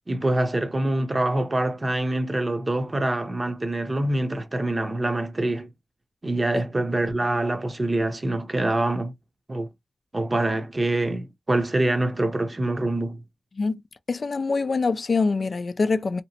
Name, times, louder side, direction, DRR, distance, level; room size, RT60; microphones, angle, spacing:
voice 1, 0.1-5.7 6.2-9.1 9.5-9.7 10.1-13.2, right 1 dB, 30° right, 0.7 m, -25 dB
voice 2, 14.1-16.2, left 4 dB, 55° left, 0.3 m, -24 dB
2.8 x 2.1 x 2.8 m
cardioid pair, 65°, 0 cm